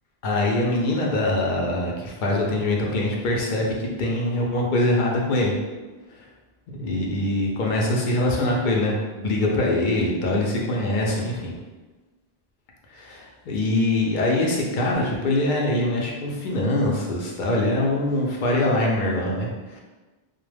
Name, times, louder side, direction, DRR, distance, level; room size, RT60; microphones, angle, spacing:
voice 1, 0.2-5.6 6.1-6.3 6.7-11.5 12.9-19.8, left 1 dB, 60° left, -2 dB, 0.6 m, -23 dB
2.2 x 2.0 x 3.2 m, 1.2 s
omnidirectional pair, 1.0 m